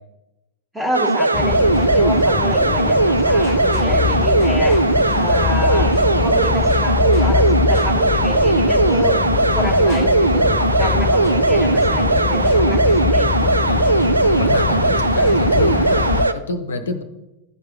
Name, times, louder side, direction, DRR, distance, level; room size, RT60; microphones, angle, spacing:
voice 1, 0.7-9.2 9.5-13.9 14.7-14.9, equal, 5° right, -1 dB, 1.8 m, -28 dB
sound 1, 0.9-16.3, right 2 dB, 80° right, 0.3 m, -17 dB
sound 2, 1.3-16.3, left 8 dB, 35° left, 0.4 m, -23 dB
sound 3, 5.6-13.3, right 6 dB, 30° right, 0.7 m, -39 dB
voice 2, 13.4-13.9 14.4-17.0, left 3 dB, 65° left, 10 dB, 0.7 m, -28 dB
11.5 x 4.7 x 4.0 m, 0.97 s
figure-of-eight pair, 90°, 0 cm